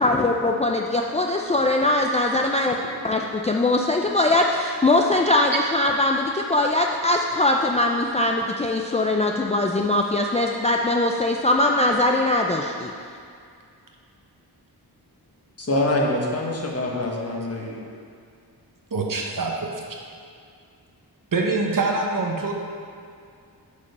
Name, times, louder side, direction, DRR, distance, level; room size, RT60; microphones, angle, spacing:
voice 1, 0.0-2.7 3.0-12.9, left 2 dB, 15° left, 1 dB, 0.4 m, -21 dB
voice 2, 15.6-17.8, left 1 dB, 35° left, -2 dB, 1.4 m, -25 dB
voice 3, 18.9-20.0 21.3-22.5, right 3 dB, 55° right, 0 dB, 1.1 m, -25 dB
8.3 x 5.1 x 5.4 m, 2.3 s
wide cardioid pair, 100°, 40 cm